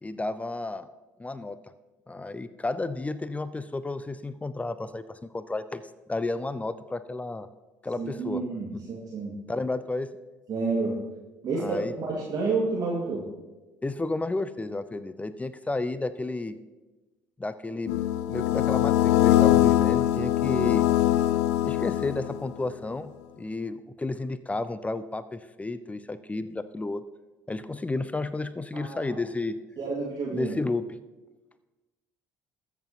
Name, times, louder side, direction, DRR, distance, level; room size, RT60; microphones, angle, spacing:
voice 1, 0.0-0.9 1.2-1.6 2.1-5.8 6.1-7.5 7.8-8.4 8.7-8.8 9.5-10.1 11.6-11.9 13.8-16.6 17.4-18.0 18.3-20.8 21.6-27.0 27.5-29.6 30.3-30.8, left 2 dB, 15° left, 14 dB, 0.6 m, -32 dB
voice 2, 8.0-9.3 10.5-11.0 11.4-13.2 28.7-29.2 29.8-30.6, right 3 dB, 45° right, -2 dB, 2.0 m, -30 dB
sound 1, 17.9-22.5, left 14 dB, 65° left, 0.5 m, -22 dB
20.5 x 8.1 x 2.9 m, 1.2 s
figure-of-eight pair, 50°, 9 cm